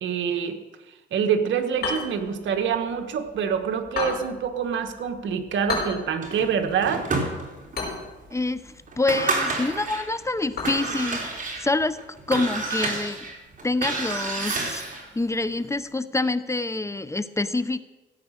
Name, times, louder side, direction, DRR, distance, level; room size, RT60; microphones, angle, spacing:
voice 1, 0.0-0.6 1.1-7.0, right 7 dB, 70° right, 6 dB, 1.4 m, -26 dB
sound 1, 1.7-11.8, left 3 dB, 50° left, 5.5 m, -36 dB
sound 2, 6.2-7.8 8.3-8.4 8.9-10.1 10.5-15.1, right 3 dB, 40° right, 3.6 m, -29 dB
voice 2, 8.3-12.0 12.3-13.3 13.6-17.8, left 2 dB, 15° left, 14 dB, 0.7 m, -26 dB
16.0 x 8.5 x 6.5 m, 1.2 s
cardioid pair, 90°, 20 cm